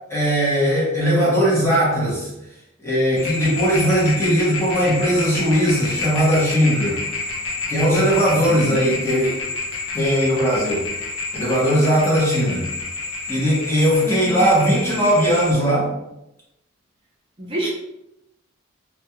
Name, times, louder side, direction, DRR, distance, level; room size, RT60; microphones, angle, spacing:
voice 1, 0.0-2.3 2.8-7.0 7.7-9.4 9.9-10.9 11.3-12.7 13.3-15.9, equal, 15° left, -6 dB, 0.8 m, -19 dB
sound 1, 3.2-15.5, left 3 dB, 70° left, 0.6 m, -29 dB
voice 2, 14.0-14.5 17.4-17.7, right 1 dB, 25° right, -6 dB, 0.6 m, -27 dB
2.3 x 2.3 x 2.9 m, 0.87 s
head